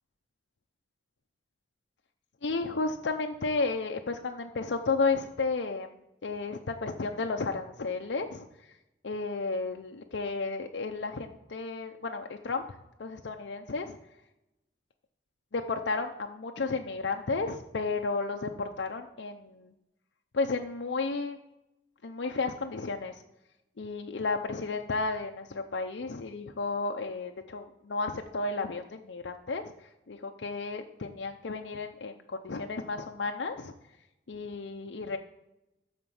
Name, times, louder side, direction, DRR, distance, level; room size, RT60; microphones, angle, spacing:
voice 1, 2.4-5.9 6.2-8.5 9.0-12.6 13.0-14.0 15.5-19.7 20.3-21.4 22.0-23.2 23.8-29.7 30.1-33.7 34.3-35.2, left 3 dB, 80° left, 4 dB, 0.6 m, -33 dB
11.5 x 4.4 x 7.1 m, 0.92 s
head